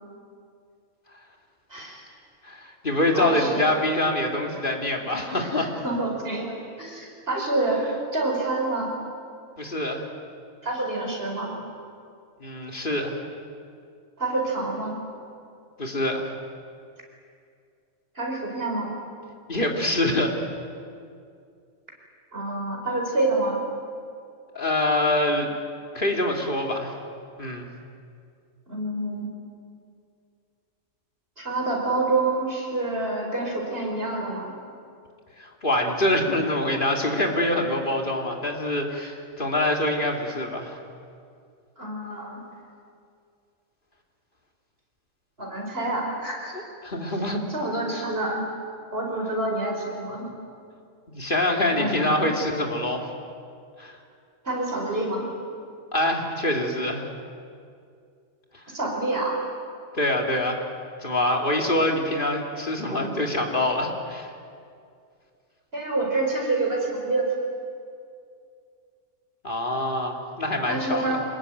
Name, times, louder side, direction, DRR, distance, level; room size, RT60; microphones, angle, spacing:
voice 1, 1.7-2.1 3.1-3.7 5.4-7.8 8.1-8.9 10.6-11.6 14.2-15.0 18.2-18.9 22.3-23.6 28.7-29.3 31.4-34.5 38.9-39.1 41.8-42.4 45.4-46.5 47.5-48.4 48.9-50.3 51.7-52.3 54.4-55.3 58.7-59.3 65.7-67.3 70.7-71.2, right 2 dB, 45° right, -1 dB, 5.3 m, -27 dB
voice 2, 2.4-5.7 9.6-10.0 12.4-13.1 15.8-16.2 19.5-20.3 24.5-25.5 25.9-27.0 27.4-27.7 35.4-40.8 46.8-47.4 51.1-53.1 53.8-54.0 55.9-57.1 59.9-60.6 61.0-64.3 69.4-71.2, left 1 dB, 40° left, 1 dB, 2.8 m, -25 dB
25.5 x 21.0 x 9.3 m, 2.3 s
omnidirectional pair, 1.4 m